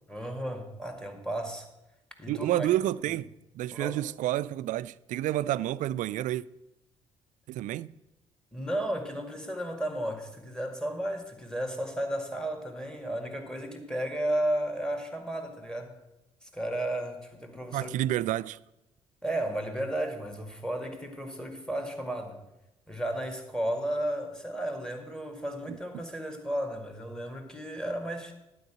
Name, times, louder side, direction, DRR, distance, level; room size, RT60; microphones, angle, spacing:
voice 1, 0.1-1.7 2.2-2.7 3.7-4.0 8.5-16.0 16.4-17.9 19.2-22.4 22.9-28.3, right 1 dB, 5° left, 2.0 m, -33 dB
voice 2, 2.3-6.4 7.5-7.9 17.7-18.6 25.7-26.0, right 14 dB, 55° right, 0.4 m, -30 dB
11.5 x 4.8 x 7.4 m
figure-of-eight pair, 45°, 16 cm